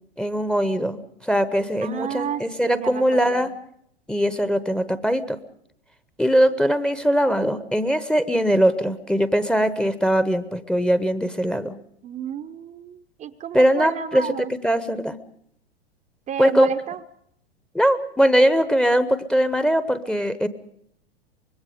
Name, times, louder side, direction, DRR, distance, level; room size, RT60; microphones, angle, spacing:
voice 1, 0.2-3.5 4.1-5.4 6.2-11.8 13.5-14.3 14.6-15.2 16.4-16.7 17.7-20.5, equal, 5° left, 13 dB, 1.0 m, -21 dB
voice 2, 1.8-3.5 12.0-14.5 16.3-17.0, right 9 dB, 25° right, 7 dB, 0.9 m, -31 dB
25.0 x 21.0 x 5.1 m, 0.69 s
figure-of-eight pair, 100°, 32 cm